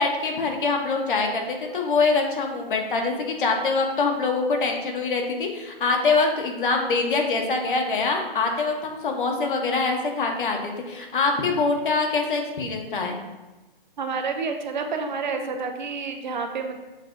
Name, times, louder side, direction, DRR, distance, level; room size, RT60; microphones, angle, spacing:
voice 1, 0.0-13.2, left 4 dB, 60° left, 2 dB, 0.9 m, -24 dB
voice 2, 14.0-16.8, right 4 dB, 50° right, 5 dB, 0.5 m, -29 dB
7.3 x 2.6 x 2.4 m, 1.1 s
hypercardioid pair, 150°, 30 cm